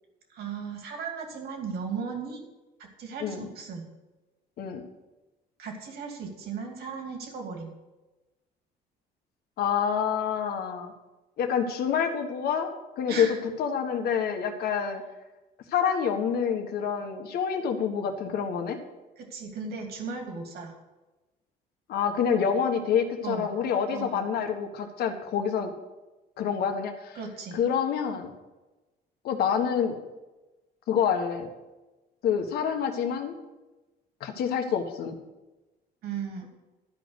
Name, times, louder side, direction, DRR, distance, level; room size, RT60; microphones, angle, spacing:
voice 1, 0.3-2.4 2.8-3.9 5.6-7.7 13.1-13.4 14.6-14.8 19.2-20.7 23.2-24.2 27.1-27.6 36.0-36.5, right 5 dB, 70° right, 2 dB, 2.7 m, -36 dB
voice 2, 9.6-10.9 11.4-12.7 13.0-13.3 13.6-15.0 15.7-18.8 21.9-25.7 26.4-27.2 27.5-28.3 29.2-30.0 30.9-31.5 32.2-33.4 34.2-35.1, left 7 dB, 70° left, 5 dB, 1.5 m, -27 dB
13.0 x 5.2 x 8.1 m, 1.1 s
cardioid pair, 110°, 17 cm